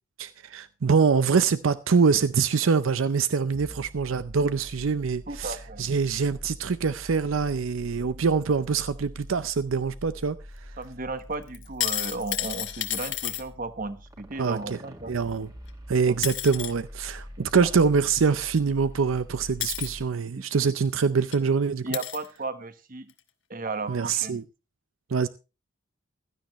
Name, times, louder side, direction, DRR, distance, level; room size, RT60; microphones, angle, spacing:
voice 1, 0.2-10.4 14.4-14.8 15.1-15.5 15.9-21.9 23.9-24.4 25.1-25.3, right 5 dB, 80° right, 0.6 m, -24 dB
sound 1, 3.5-20.1, equal, 20° right, 1.8 m, -45 dB
voice 2, 5.3-5.9 10.8-15.1 16.1-16.2 17.4-17.7 21.8-23.1 23.5-24.4, right 3 dB, 45° right, 1.2 m, -34 dB
sound 2, 11.5-13.4 15.7-15.8 16.2-16.7 18.6-18.7 19.6-19.9 20.9-21.0 21.3-21.4 21.9-22.3 23.1-23.2, left 13 dB, 60° left, 1.4 m, -31 dB
16.0 x 13.0 x 3.0 m
head